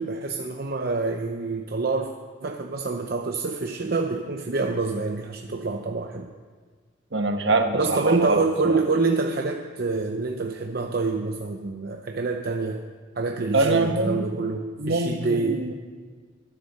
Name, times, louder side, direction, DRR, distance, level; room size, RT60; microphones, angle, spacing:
voice 1, 0.0-2.1 2.4-6.3 7.7-12.8 13.2-15.6, right 3 dB, 50° right, 3 dB, 0.7 m, -26 dB
voice 2, 7.1-8.4 8.7-8.8 13.5-14.2 14.8-15.7, right 2 dB, 70° right, 5 dB, 1.3 m, -24 dB
12.5 x 10.5 x 6.7 m, 1.5 s
head